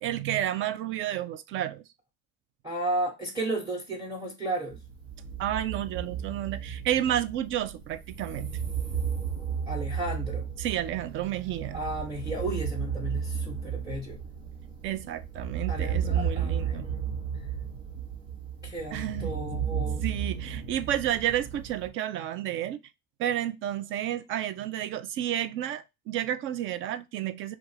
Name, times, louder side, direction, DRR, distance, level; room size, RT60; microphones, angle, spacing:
voice 1, 0.0-1.8 5.4-8.6 10.6-11.8 14.8-16.9 18.9-19.3 20.0-22.8 23.2-27.5, right 12 dB, 40° right, 0.4 m, -31 dB
voice 2, 2.6-4.8 9.7-10.5 11.7-14.2 15.7-17.1 18.6-20.1, right 2 dB, 10° right, 1.0 m, -34 dB
sound 1, 4.7-21.9, right 7 dB, 70° right, 1.0 m, -33 dB
2.4 x 2.3 x 3.2 m
hypercardioid pair, 75°, 31 cm